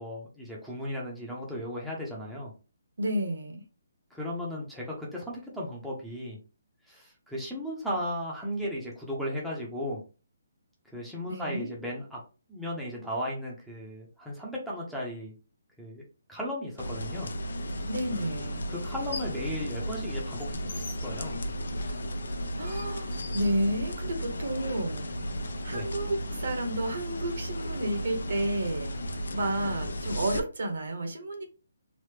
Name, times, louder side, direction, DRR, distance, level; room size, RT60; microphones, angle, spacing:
voice 1, 0.0-2.5 4.1-6.4 6.9-10.0 10.9-12.2 12.5-15.3 15.8-16.0 16.3-17.3 18.7-21.4 25.7-25.9, equal, ahead, 0.6 m, -36 dB
voice 2, 3.0-3.6 11.3-11.7 17.9-18.6 22.6-25.1 25.6-28.9 29.3-31.4, right 1 dB, 65° right, 0.9 m, -31 dB
sound 1, 16.8-30.4, equal, 80° left, 0.5 m, -34 dB
sound 2, 17.6-17.7 18.8-19.5 19.8-24.2, left 3 dB, 50° left, 1.0 m, -44 dB
3.1 x 2.1 x 3.2 m
hypercardioid pair, 170°, 0 cm